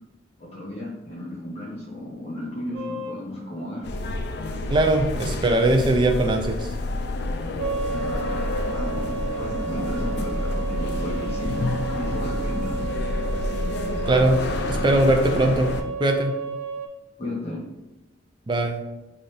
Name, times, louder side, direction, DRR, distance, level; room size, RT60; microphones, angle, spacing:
voice 1, 0.4-3.9 7.9-8.4 8.6-12.8 17.2-17.6, left 1 dB, 35° left, -5 dB, 1.4 m, -33 dB
sound 1, 2.7-3.2 7.6-16.9, right 5 dB, 80° right, 0.5 m, -32 dB
sound 2, 3.8-15.8, left 2 dB, 60° left, 0.3 m, -29 dB
voice 2, 4.7-6.7 14.1-14.4 14.7-15.7 16.0-16.3 18.5-18.8, right 1 dB, 25° right, 3 dB, 0.4 m, -20 dB
4.1 x 2.4 x 3.3 m, 1.0 s
head